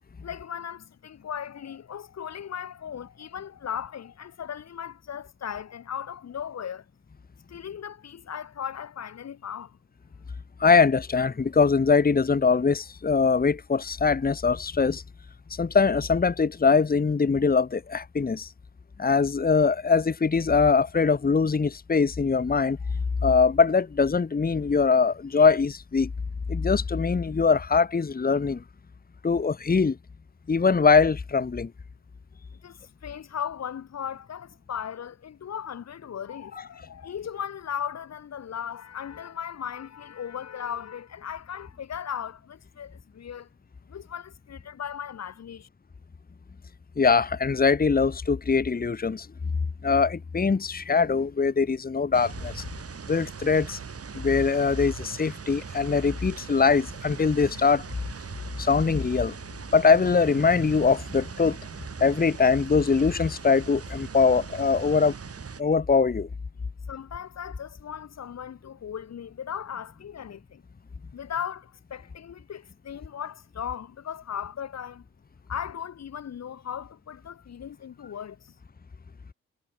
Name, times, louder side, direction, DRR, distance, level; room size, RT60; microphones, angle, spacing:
voice 1, 0.2-6.8 7.5-9.8 32.6-43.5 43.9-45.7 66.6-70.6 71.1-75.0 75.5-78.6, left 8 dB, 60° left, 1.7 m, -37 dB
voice 2, 10.6-15.0 15.6-18.5 19.0-22.8 23.2-26.1 26.5-28.6 29.2-30.0 30.5-31.7 47.0-49.3 49.8-52.6 53.1-53.8 54.1-57.8 58.6-59.3 59.7-61.6 62.0-65.1 65.6-66.3, left 5 dB, 30° left, 1.5 m, -22 dB
sound 1, 52.1-65.6, right 6 dB, 50° right, 6.1 m, -40 dB
supercardioid pair, 55°, 30 cm